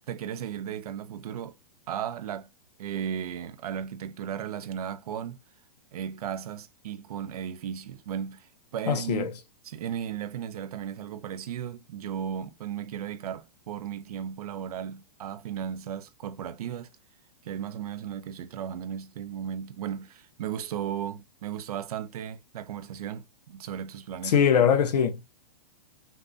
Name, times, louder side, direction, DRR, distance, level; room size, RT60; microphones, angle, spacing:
voice 1, 0.1-1.6 1.9-2.5 2.8-5.4 5.9-9.3 9.6-16.9 17.4-24.4, right 9 dB, 65° right, 0.9 m, -35 dB
voice 2, 8.9-9.3 24.2-25.3, left 7 dB, 75° left, 1.2 m, -22 dB
5.8 x 2.8 x 2.5 m
hypercardioid pair, 150°, 21 cm